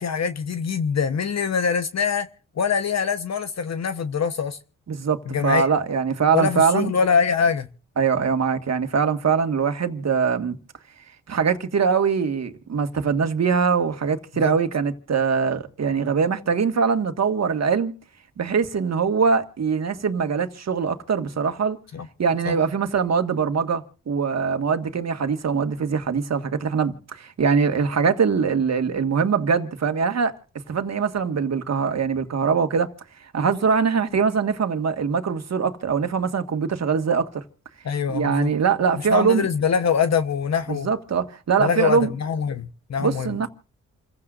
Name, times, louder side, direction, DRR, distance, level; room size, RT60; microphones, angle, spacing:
voice 1, 0.0-2.3 2.6-4.6 5.3-5.7 6.3-7.7 14.3-14.6 21.9-22.1 22.5-22.6 37.8-38.5 39.1-40.9 41.6-43.5, left 6 dB, 60° left, 1.2 m, -24 dB
voice 2, 4.9-6.9 8.0-10.6 11.3-17.9 18.4-21.8 22.2-30.3 30.7-32.9 33.3-37.4 38.1-39.5 40.7-42.1 43.0-43.5, right 6 dB, 60° right, 1.9 m, -22 dB
28.5 x 15.5 x 2.6 m
supercardioid pair, 45°, 30 cm